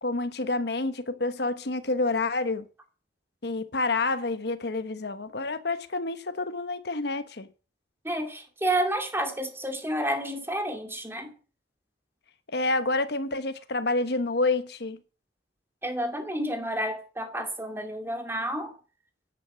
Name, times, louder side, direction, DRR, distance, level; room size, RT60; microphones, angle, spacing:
voice 1, 0.0-2.6 3.4-7.5 12.5-15.0, left 3 dB, 70° left, 1.3 m, -28 dB
voice 2, 8.0-11.3 15.8-18.7, right 1 dB, 15° right, 2.6 m, -30 dB
10.5 x 9.0 x 7.5 m
head